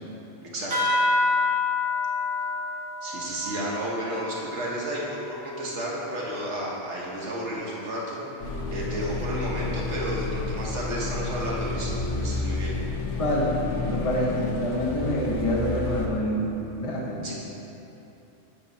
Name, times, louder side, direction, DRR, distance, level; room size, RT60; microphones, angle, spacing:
voice 1, 0.4-0.7 3.0-8.2 8.7-12.7 15.2-15.3 17.2-17.3, right 1 dB, 60° right, -5 dB, 1.4 m, -32 dB
sound 1, 0.7-5.6, left 3 dB, 80° right, 1.9 m, -28 dB
sound 2, 8.4-16.1, left 3 dB, 65° left, 1.1 m, -30 dB
voice 2, 13.2-17.2, equal, 35° left, -3 dB, 0.7 m, -27 dB
8.8 x 3.0 x 5.7 m, 3.0 s
omnidirectional pair, 1.4 m